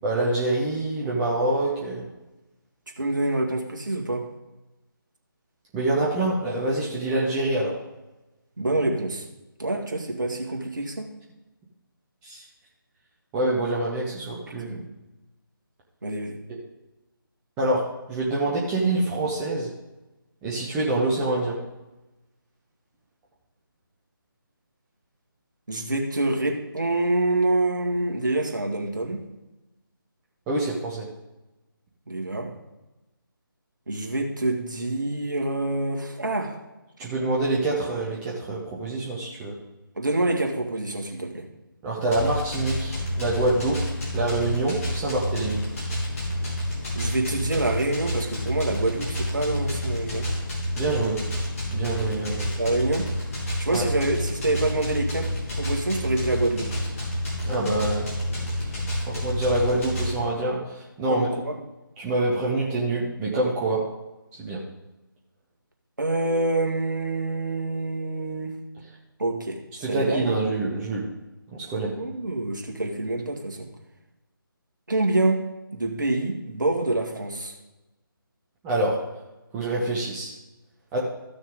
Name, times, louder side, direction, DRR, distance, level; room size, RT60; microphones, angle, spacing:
voice 1, 0.0-2.0 5.7-7.8 12.2-12.4 13.3-14.8 16.5-16.6 17.6-19.7 20.4-21.6 30.5-31.1 37.0-39.5 41.8-45.6 50.8-51.2 51.7-52.5 53.7-53.9 57.4-58.1 58.4-58.5 59.1-61.3 62.0-63.8 64.3-64.6 69.8-71.1 71.5-71.9 78.6-79.0 79.5-80.3 80.9-81.0, right 2 dB, 5° right, -5 dB, 0.5 m, -26 dB
voice 2, 3.0-4.3 8.6-9.2 9.6-11.1 14.6-14.9 16.0-16.4 25.7-29.3 32.1-32.6 33.9-36.6 39.9-41.5 46.9-50.3 52.6-53.1 53.6-56.7 61.1-61.6 66.0-68.6 69.2-70.3 72.0-73.7 74.9-77.5, right 2 dB, 55° right, 1 dB, 1.7 m, -26 dB
sound 1, 42.1-60.1, equal, 40° left, 3.6 m, -29 dB
14.5 x 6.3 x 3.7 m, 1.0 s
figure-of-eight pair, 155°, 12 cm